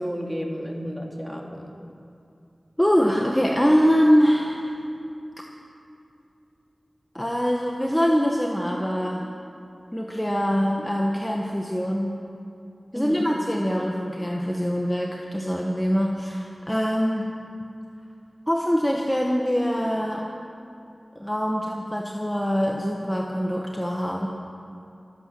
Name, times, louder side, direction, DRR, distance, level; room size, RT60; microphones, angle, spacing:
voice 1, 0.0-1.7 12.9-13.3, equal, 10° right, 0 dB, 2.3 m, -32 dB
voice 2, 2.8-4.8 7.1-9.3 9.9-12.1 12.9-17.3 18.5-20.3 21.1-24.3, equal, 10° left, -1 dB, 1.2 m, -23 dB
24.0 x 8.6 x 6.2 m, 2.7 s
wide cardioid pair, 50°, 0 cm